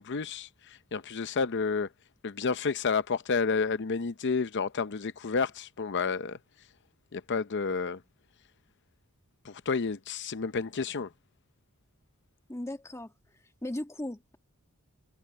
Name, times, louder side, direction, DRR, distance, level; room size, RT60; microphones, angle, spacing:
voice 1, 0.0-1.9 2.2-6.4 7.1-8.0 9.4-11.1, left 5 dB, 55° left, 0.6 m, -30 dB
voice 2, 12.5-13.1 13.6-14.4, left 1 dB, 15° left, 1.5 m, -37 dB
head